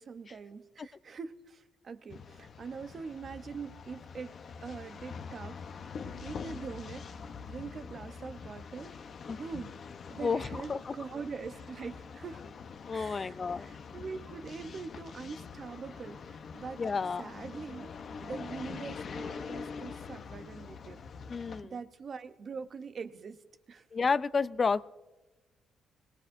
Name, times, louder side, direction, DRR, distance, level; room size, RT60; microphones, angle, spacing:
voice 1, 0.0-5.9 6.2-7.0 7.4-8.9 9.4-9.7 10.1-12.4 12.9-16.8 17.2-17.9 18.2-21.0 21.6-23.9, right 5 dB, 45° right, 10 dB, 0.9 m, -43 dB
sound 1, 2.1-21.6, left 5 dB, 55° left, 0.9 m, -44 dB
voice 2, 10.2-10.9 12.8-13.7 16.8-17.2 21.3-21.7 23.9-24.9, left 5 dB, 35° left, 15 dB, 0.4 m, -30 dB
22.5 x 19.0 x 2.7 m, 1.1 s
cardioid pair, 90°, 0 cm